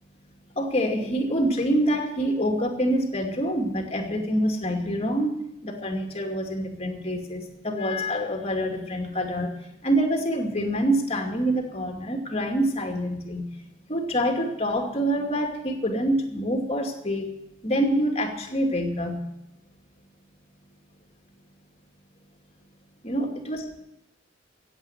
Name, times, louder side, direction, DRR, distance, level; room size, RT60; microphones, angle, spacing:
voice 1, 0.5-13.5 13.9-17.3 17.6-19.3 23.0-23.8, equal, 30° left, 3 dB, 2.6 m, -26 dB
16.5 x 8.2 x 8.2 m, 0.87 s
head